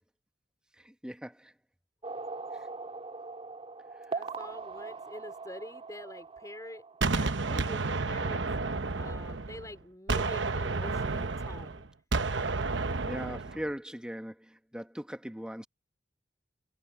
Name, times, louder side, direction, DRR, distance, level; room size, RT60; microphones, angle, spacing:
voice 1, 0.8-1.5 2.5-2.7 4.0-4.2 13.1-15.7, equal, 5° right, 1.2 m, -40 dB
sound 1, 2.0-7.4, right 4 dB, 30° right, 3.3 m, -41 dB
voice 2, 4.1-8.4 9.0-11.9, left 1 dB, 20° left, 3.9 m, -46 dB
Gunshot gunfire, 7.0-9.7 10.1-13.6, right 3 dB, 75° right, 1.0 m, -31 dB
head